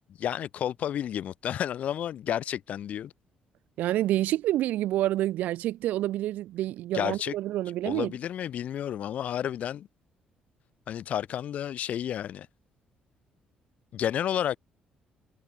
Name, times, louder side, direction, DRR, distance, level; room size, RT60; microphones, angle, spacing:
voice 1, 0.2-3.1 6.9-7.3 7.9-9.9 10.9-12.5 13.9-14.6, left 10 dB, 55° left, 1.7 m, -31 dB
voice 2, 3.8-8.1, right 14 dB, 80° right, 0.6 m, -28 dB
cardioid pair, 140°, 3 cm